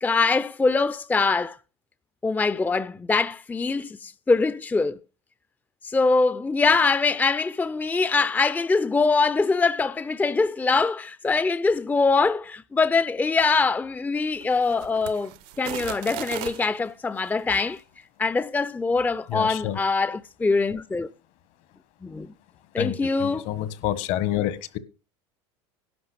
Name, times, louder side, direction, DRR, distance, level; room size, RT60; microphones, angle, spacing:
voice 1, 0.0-1.6 2.2-5.0 5.8-17.8 18.2-21.1 22.0-22.3 22.7-23.5, left 4 dB, 10° left, 0.5 m, -23 dB
sound 1, 14.3-16.7 17.4-17.6, right 16 dB, 65° right, 0.8 m, -37 dB
voice 2, 19.3-19.8 22.8-24.8, left 12 dB, 60° left, 1.5 m, -28 dB
11.5 x 5.5 x 8.5 m
hypercardioid pair, 90°, 15 cm